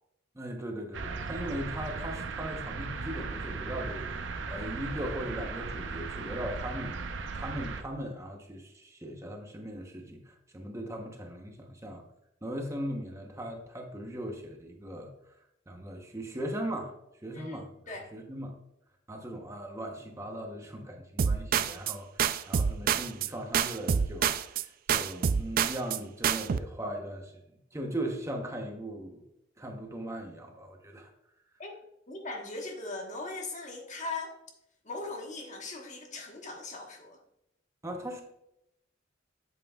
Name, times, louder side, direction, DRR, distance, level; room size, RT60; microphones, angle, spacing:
voice 1, 0.3-4.1 4.5-7.0 7.3-12.0 12.4-15.1 15.7-16.9 17.2-17.7 18.1-18.5 19.1-27.3 27.7-29.2 29.6-31.1 37.8-38.2, right 1 dB, 15° right, 2 dB, 0.9 m, -38 dB
sound 1, 0.9-7.8, right 4 dB, 75° right, 0.7 m, -37 dB
voice 2, 17.3-18.1 31.6-31.8 32.1-34.3 34.8-37.2, left 3 dB, 40° left, 2 dB, 1.3 m, -39 dB
sound 2, 21.2-21.9 22.2-23.3 23.5-24.6 24.9-26.0 26.2-26.6, right 7 dB, 50° right, 0.3 m, -27 dB
8.9 x 7.5 x 2.3 m, 0.80 s
head